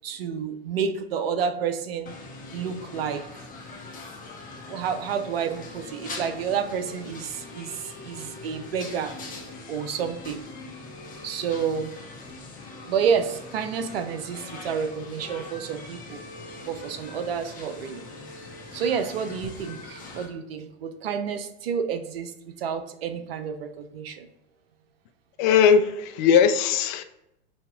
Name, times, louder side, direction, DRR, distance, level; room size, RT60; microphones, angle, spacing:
voice 1, 0.0-2.1 2.5-3.5 4.7-9.1 9.7-10.4 11.2-11.9 12.9-16.2 16.6-18.0 18.7-24.3, right 7 dB, 70° right, 9 dB, 0.6 m, -29 dB
sound 1, 2.1-20.3, left 3 dB, 25° left, 0.9 m, -42 dB
voice 2, 25.4-27.0, left 7 dB, 50° left, 9 dB, 0.5 m, -19 dB
5.2 x 2.8 x 2.3 m, 0.85 s
hypercardioid pair, 100°, 31 cm